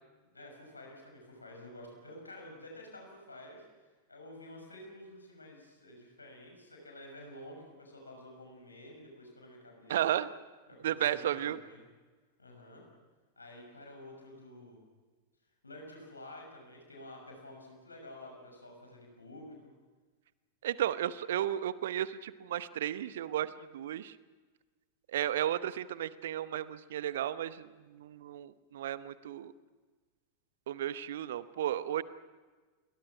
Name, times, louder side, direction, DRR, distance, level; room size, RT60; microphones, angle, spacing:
voice 1, 0.2-3.6 4.1-10.0 10.7-11.8 12.4-12.8 13.4-14.8 15.6-19.7, left 1 dB, 80° left, 1 dB, 6.3 m, -50 dB
voice 2, 9.9-10.3 10.8-11.6 20.6-24.1 25.1-29.5 30.7-32.0, right 11 dB, 60° right, 15 dB, 0.9 m, -34 dB
28.5 x 22.0 x 6.1 m, 1.4 s
figure-of-eight pair, 90°, 0 cm